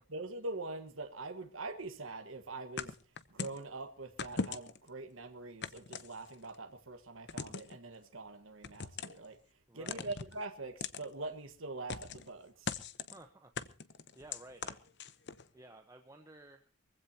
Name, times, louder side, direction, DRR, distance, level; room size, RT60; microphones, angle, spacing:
voice 1, 0.1-3.0 3.3-9.4 9.7-12.7, right 2 dB, 70° right, 1.5 m, -44 dB
sound 1, 2.8-3.6 4.2-4.9 5.6-6.6 7.3-7.8 8.6-9.3 9.9-10.4 10.8-11.1 11.9-12.3 12.7-13.2 13.6-15.4, left 5 dB, 55° left, 0.9 m, -40 dB
voice 2, 9.7-10.1 13.1-13.5 14.1-14.8 15.5-16.7, right 2 dB, 15° right, 1.0 m, -54 dB
23.5 x 15.5 x 2.9 m
head